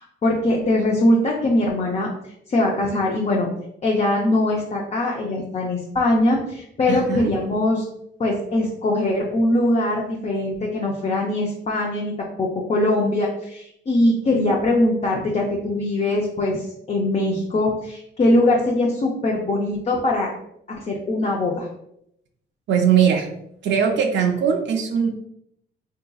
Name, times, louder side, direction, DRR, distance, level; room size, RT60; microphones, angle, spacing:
voice 1, 0.2-2.1 2.5-3.5 3.8-7.8 8.2-20.3 20.7-21.7, left 1 dB, 35° left, -2 dB, 0.6 m, -21 dB
voice 2, 6.9-7.3 22.7-23.3 23.6-25.1, right 7 dB, 65° right, 3 dB, 0.6 m, -20 dB
3.6 x 2.8 x 2.3 m, 0.74 s
cardioid pair, 90°, 20 cm